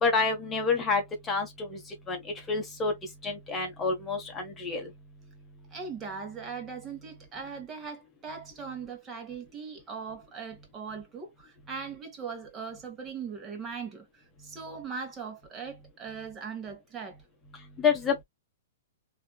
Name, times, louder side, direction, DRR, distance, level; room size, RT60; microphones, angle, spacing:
voice 1, 0.0-1.8 2.1-2.2 2.5-2.9 3.2-4.9 17.8-18.2, left 4 dB, 15° left, 1.1 m, -28 dB
voice 2, 5.7-17.1, right 5 dB, 20° right, 1.5 m, -40 dB
4.8 x 2.9 x 2.3 m
figure-of-eight pair, 110°, 0 cm